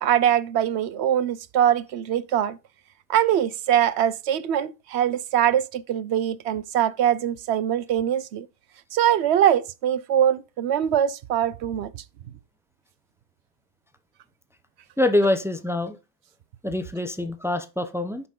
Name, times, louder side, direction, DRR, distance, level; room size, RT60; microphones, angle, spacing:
voice 1, 0.0-2.6 3.1-8.5 8.9-11.9, right 10 dB, 65° right, 0.7 m, -22 dB
voice 2, 15.0-16.0 16.6-18.3, left 1 dB, 5° right, 0.3 m, -24 dB
9.2 x 6.0 x 3.7 m
omnidirectional pair, 1.6 m